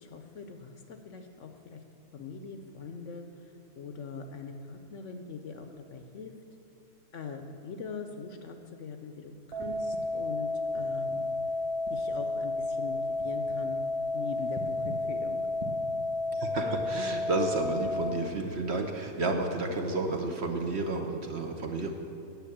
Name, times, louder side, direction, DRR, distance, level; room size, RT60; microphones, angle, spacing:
voice 1, 0.0-1.8 2.1-3.2 3.8-6.3 7.1-11.3 11.9-13.8 14.1-15.4, left 5 dB, 60° left, 6 dB, 0.9 m, -42 dB
sound 1, 9.5-18.1, left 2 dB, 25° right, 1.4 m, -31 dB
voice 2, 16.3-21.9, right 2 dB, 55° right, 4 dB, 0.9 m, -31 dB
9.3 x 6.6 x 8.4 m, 2.7 s
omnidirectional pair, 1.6 m